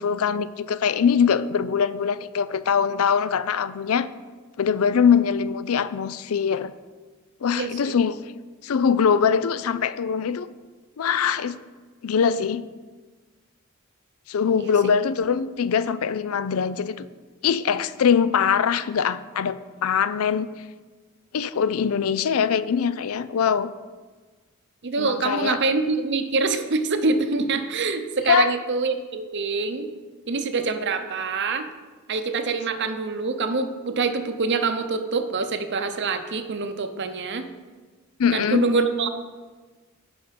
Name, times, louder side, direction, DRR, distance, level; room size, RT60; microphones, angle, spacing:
voice 1, 0.0-4.1 4.6-6.7 7.4-8.2 8.6-10.5 11.0-11.6 12.0-12.6 14.3-17.1 17.4-20.5 21.3-23.7 25.0-25.6 28.3-28.5 38.2-38.6, left 7 dB, 70° left, 16 dB, 0.4 m, -22 dB
voice 2, 7.5-7.9 14.6-14.7 24.8-29.9 30.3-31.7 32.1-37.5 38.3-39.1, right 4 dB, 50° right, 8 dB, 0.8 m, -25 dB
11.5 x 5.1 x 5.9 m, 1.4 s
head